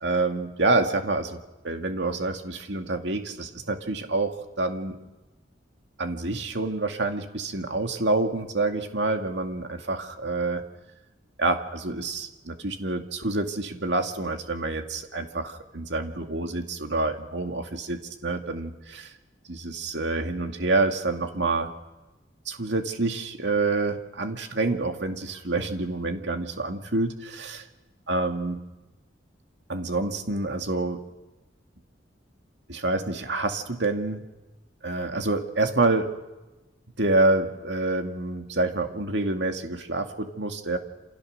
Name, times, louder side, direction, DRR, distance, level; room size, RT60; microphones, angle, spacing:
voice 1, 0.0-5.0 6.0-10.7 11.4-19.1 19.5-21.7 22.5-27.6 28.1-28.6 29.7-31.1 32.7-34.3 34.8-36.1 37.0-40.8, right 2 dB, 70° right, 5 dB, 2.4 m, -27 dB
28.5 x 27.5 x 6.6 m, 1.1 s
head